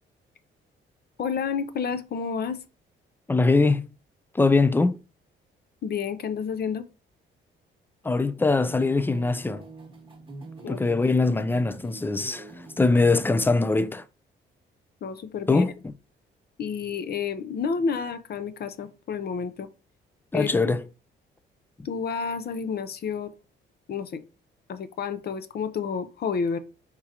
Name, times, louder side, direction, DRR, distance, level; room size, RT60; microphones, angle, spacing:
voice 1, 1.2-2.6 5.8-6.9 10.6-11.1 15.0-15.6 16.6-19.7 20.3-20.5 21.8-23.3 23.9-24.2 24.7-26.6, left 6 dB, 55° left, 0.6 m, -30 dB
voice 2, 3.3-3.9 4.3-5.0 8.0-9.6 10.7-12.5 12.8-14.0 15.5-15.7 20.3-20.8, left 3 dB, 10° left, 0.3 m, -22 dB
sound 1, 8.4-13.6, right 3 dB, 25° right, 1.0 m, -44 dB
4.6 x 3.6 x 2.8 m
cardioid pair, 90°, 20 cm